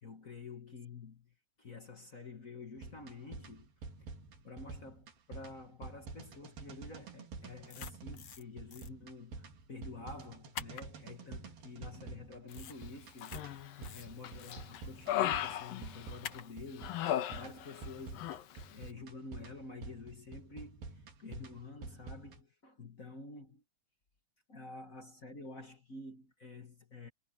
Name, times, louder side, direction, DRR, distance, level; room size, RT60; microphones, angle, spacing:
voice 1, 0.0-1.3 1.6-3.7 4.0-4.1 4.4-17.0 17.3-23.6 24.5-27.1, left 3 dB, 40° left, 1.2 m, -49 dB
sound 1, 2.8-22.4, right 3 dB, 80° right, 5.1 m, -49 dB
sound 2, 7.7-8.4 8.7-8.9 10.5-10.8 12.5-12.8 13.1-13.4 13.8-14.6 16.2-16.5, left 9 dB, 55° left, 2.1 m, -46 dB
Human voice, 13.2-13.8 14.2-16.4 16.8-17.9 18.2-18.4, left 12 dB, 80° left, 3.1 m, -36 dB
omnidirectional pair, 4.0 m